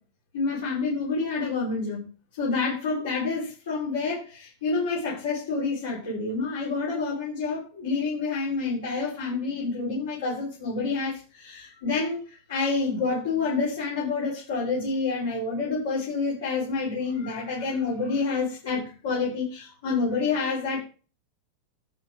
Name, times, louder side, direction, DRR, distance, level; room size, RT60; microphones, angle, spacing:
voice 1, 0.3-2.0 2.4-20.8, left 4 dB, 60° left, -6 dB, 5.1 m, -28 dB
12.0 x 5.8 x 5.0 m, 0.37 s
figure-of-eight pair, 90°, 0 cm